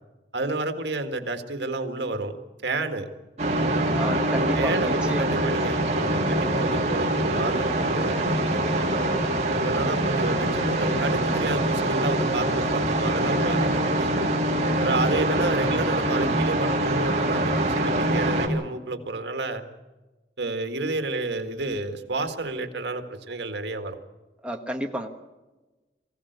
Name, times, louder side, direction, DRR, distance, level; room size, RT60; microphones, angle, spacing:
voice 1, 0.3-2.3 2.6-3.1 4.5-8.8 9.5-14.1 14.8-19.6 20.4-24.0, right 2 dB, 80° right, 7 dB, 1.9 m, -30 dB
sound 1, 3.4-18.5, right 1 dB, 40° right, 3.3 m, -24 dB
voice 2, 3.9-5.4 16.1-16.4 24.4-25.1, right 1 dB, 5° right, 2 dB, 1.4 m, -31 dB
24.0 x 16.0 x 8.1 m, 1.2 s
head